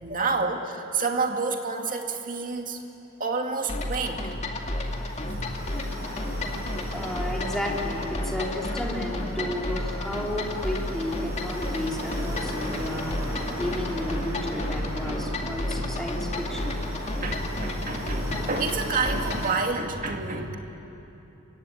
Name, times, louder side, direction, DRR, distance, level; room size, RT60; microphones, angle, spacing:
voice 1, 0.0-2.8 3.2-4.3 4.6-5.5 6.0-6.1 6.5-6.7 9.4-9.6 14.7-15.2 15.8-15.9 16.5-16.8 17.2-20.6, right 4 dB, 40° right, 3 dB, 2.2 m, -30 dB
sound 1, 3.7-19.6, left 1 dB, 35° left, 2.2 m, -32 dB
sound 2, 4.1-19.5, equal, 15° right, 6.5 m, -38 dB
voice 2, 6.9-16.8, left 1 dB, ahead, -2 dB, 3.7 m, -33 dB
25.5 x 23.5 x 9.9 m, 3.0 s
head